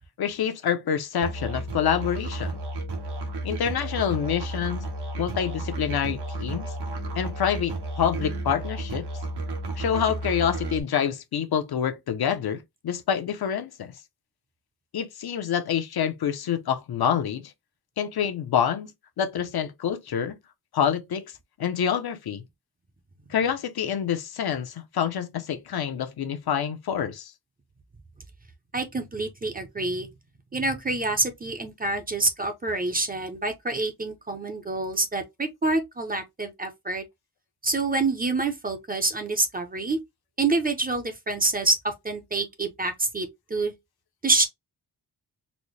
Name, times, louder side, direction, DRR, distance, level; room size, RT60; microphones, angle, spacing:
voice 1, 0.2-2.6 3.4-4.9 5.2-6.7 7.2-9.1 9.8-13.9 14.9-17.5 18.0-18.9 19.2-20.4 20.7-21.2 21.6-22.4 23.3-27.3, left 8 dB, 65° left, 0.6 m, -27 dB
Musical instrument, 1.2-10.8, right 2 dB, 80° right, 1.1 m, -32 dB
voice 2, 28.7-30.1 30.5-37.0 37.6-40.0 40.4-43.7 44.2-44.4, right 3 dB, 20° right, 0.5 m, -27 dB
4.1 x 2.0 x 3.0 m
wide cardioid pair, 160°, 40 cm